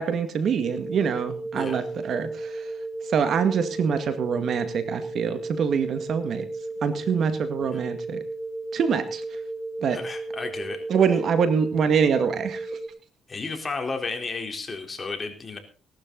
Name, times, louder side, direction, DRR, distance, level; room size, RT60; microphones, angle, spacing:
voice 1, 0.0-2.7 3.0-6.5 6.8-8.2 8.7-9.4 9.8-10.0 10.9-12.8, right 6 dB, 60° right, 10 dB, 2.0 m, -25 dB
sound 1, 0.6-12.9, right 2 dB, 25° right, 2.4 m, -34 dB
voice 2, 9.9-10.8 13.3-15.6, left 4 dB, 30° left, 4 dB, 3.9 m, -33 dB
18.5 x 12.0 x 4.0 m, 0.36 s
cardioid pair, 90°, 0 cm